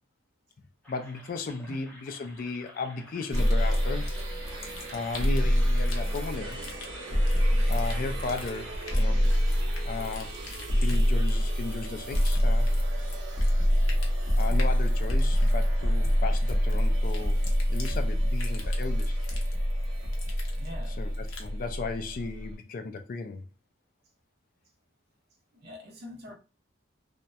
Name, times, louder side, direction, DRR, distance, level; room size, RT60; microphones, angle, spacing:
sound 1, 0.8-9.8, equal, 5° left, 0.8 m, -52 dB
voice 1, 0.9-4.1 4.9-6.6 7.7-9.2 9.8-10.4 10.8-12.7 14.4-19.2 21.0-23.5, left 4 dB, 45° left, 0.3 m, -35 dB
sound 2, 3.3-21.5, left 3 dB, 85° left, 0.7 m, -46 dB
sound 3, 3.3-22.5, equal, 80° right, 0.9 m, -26 dB
voice 2, 20.6-21.0 25.5-26.3, left 1 dB, 50° right, 0.6 m, -44 dB
2.7 x 2.0 x 2.2 m
head